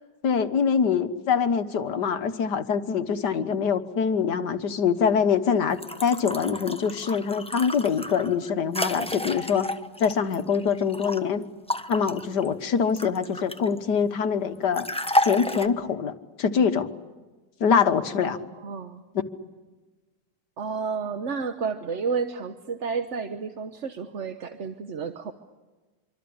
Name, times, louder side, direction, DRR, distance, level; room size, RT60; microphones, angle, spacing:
voice 1, 0.2-9.7 10.0-11.4 11.9-14.9 15.2-16.1 16.4-16.9 17.6-18.4, left 6 dB, 70° left, 10 dB, 1.9 m, -24 dB
sound 1, 5.7-11.2 11.7-13.8 14.7-15.7, left 1 dB, 5° left, 0.8 m, -31 dB
voice 2, 18.2-19.0 20.6-25.3, right 5 dB, 45° right, 8 dB, 1.3 m, -31 dB
26.0 x 25.5 x 8.8 m, 1.2 s
omnidirectional pair, 1.9 m